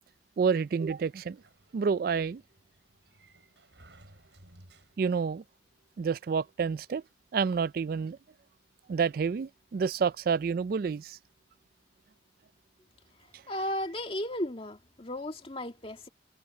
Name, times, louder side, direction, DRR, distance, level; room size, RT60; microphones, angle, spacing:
voice 1, 0.4-1.4 1.7-2.4 5.0-5.4 6.0-7.0 7.3-8.2 8.9-11.2, right 6 dB, 55° right, 0.3 m, -29 dB
Sliding door, 0.7-5.3, right 1 dB, 80° right, 6.2 m, -59 dB
voice 2, 13.5-16.1, left 1 dB, 30° left, 2.0 m, -35 dB
head